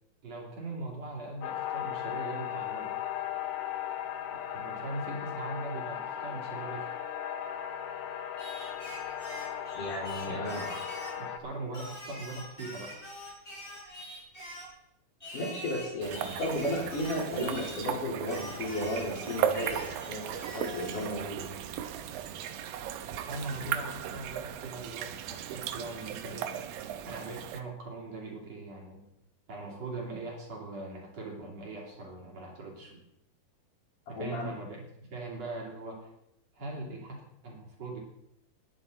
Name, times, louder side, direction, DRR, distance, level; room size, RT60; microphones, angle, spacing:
voice 1, 0.2-3.0 4.5-7.0 10.2-10.8 11.2-13.0 23.3-26.5 27.0-29.1 29.5-33.0 34.1-34.8 35.1-36.1 36.5-38.0, right 2 dB, 45° right, -2 dB, 4.1 m, -40 dB
sound 1, 1.4-11.4, left 10 dB, 80° left, 2.9 m, -37 dB
Singing, 8.4-11.2 11.7-14.8 15.2-17.9 18.2-21.1, equal, 15° left, 5.9 m, -45 dB
voice 2, 9.7-10.6 15.3-21.4 34.1-34.5, left 1 dB, 60° left, -3 dB, 5.4 m, -34 dB
sound 2, 16.0-27.6, right 9 dB, 80° right, 2.6 m, -36 dB
20.5 x 9.8 x 4.2 m, 0.80 s
omnidirectional pair, 4.2 m